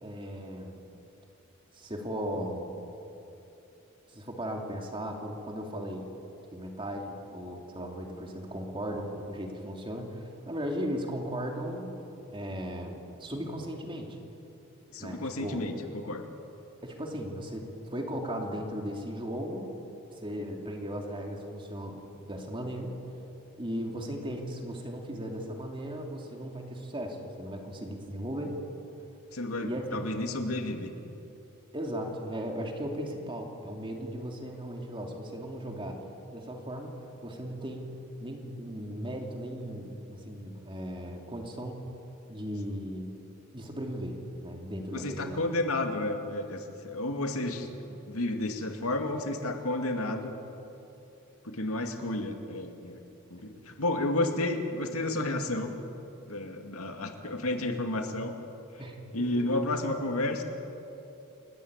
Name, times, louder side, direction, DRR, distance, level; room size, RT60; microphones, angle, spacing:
voice 1, 0.0-0.8 1.7-2.8 4.1-6.0 6.5-12.1 12.3-14.2 15.0-15.6 16.8-19.7 20.2-23.0 23.6-28.5 29.6-30.0 31.7-36.0 36.3-36.9 37.2-37.9 38.2-41.9 42.3-43.1 43.5-45.4 58.8-59.6, equal, 25° right, 2 dB, 2.9 m, -37 dB
voice 2, 14.9-16.2 29.3-30.9 44.9-50.3 51.4-53.0 53.3-55.7 56.3-58.3 59.1-60.4, left 2 dB, 85° left, 5 dB, 2.3 m, -31 dB
29.5 x 14.0 x 9.7 m, 2.9 s
head